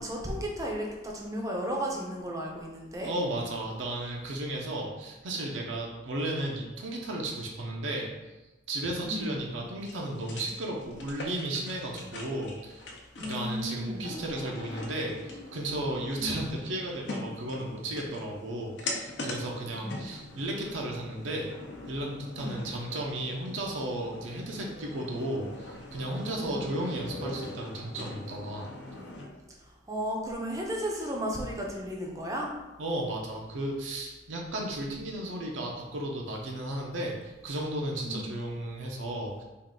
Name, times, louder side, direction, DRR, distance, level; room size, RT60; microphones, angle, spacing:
voice 1, 0.0-3.1 9.1-9.3 13.2-14.1 16.1-16.4 19.7-20.2 22.4-22.6 26.4-26.6 29.9-32.5 38.0-38.3, equal, 15° right, -1 dB, 0.5 m, -34 dB
voice 2, 3.0-8.1 8.7-12.8 13.2-21.5 21.9-28.7 32.8-39.4, right 1 dB, 85° right, -1 dB, 0.6 m, -34 dB
sound 1, 9.8-29.3, left 2 dB, 65° left, 0.6 m, -42 dB
3.5 x 2.4 x 3.7 m, 1.1 s
head